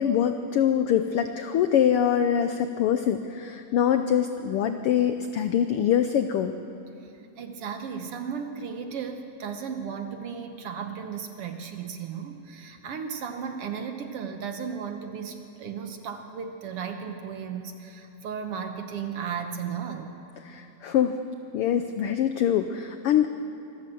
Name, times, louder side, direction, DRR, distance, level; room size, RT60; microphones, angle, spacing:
voice 1, 0.0-6.5 20.5-21.2 21.5-23.3, left 9 dB, 85° left, 8 dB, 1.2 m, -24 dB
voice 2, 7.0-20.2, right 6 dB, 65° right, 6 dB, 1.7 m, -35 dB
25.0 x 13.5 x 7.7 m, 2.8 s
omnidirectional pair, 3.3 m